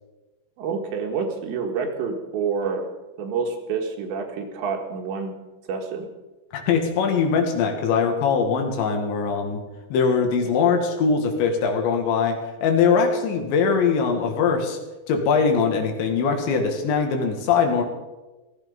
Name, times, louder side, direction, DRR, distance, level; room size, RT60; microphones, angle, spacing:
voice 1, 0.6-2.9 3.2-5.4 5.7-6.1, right 5 dB, 75° right, 3 dB, 3.8 m, -28 dB
voice 2, 6.5-9.6 9.9-14.8 15.1-17.8, left 5 dB, 75° left, 4 dB, 4.0 m, -21 dB
16.0 x 15.0 x 5.2 m, 1.1 s
omnidirectional pair, 5.4 m